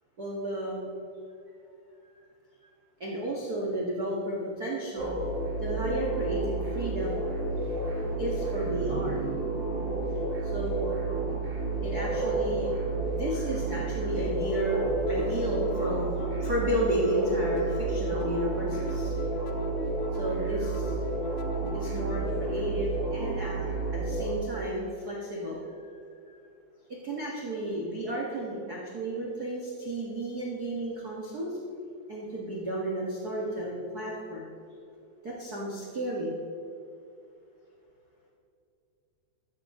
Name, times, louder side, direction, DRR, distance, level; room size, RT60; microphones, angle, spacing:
voice 1, 0.2-0.9 2.6-2.7 3.0-5.1 5.6-7.2 8.2-9.2 10.4-11.0 11.8-12.7 13.1-19.1 20.1-20.9 21.7-23.6 23.9-25.9 26.2-26.4 26.9-31.6 32.1-34.5 35.2-36.3, right 1 dB, 75° right, -4 dB, 0.8 m, -32 dB
sound 1, 5.0-24.3, right 3 dB, 30° right, 3.6 m, -31 dB
sound 2, 14.2-22.5, left 5 dB, 85° left, 2.9 m, -40 dB
14.0 x 14.0 x 3.8 m, 2.6 s
omnidirectional pair, 4.9 m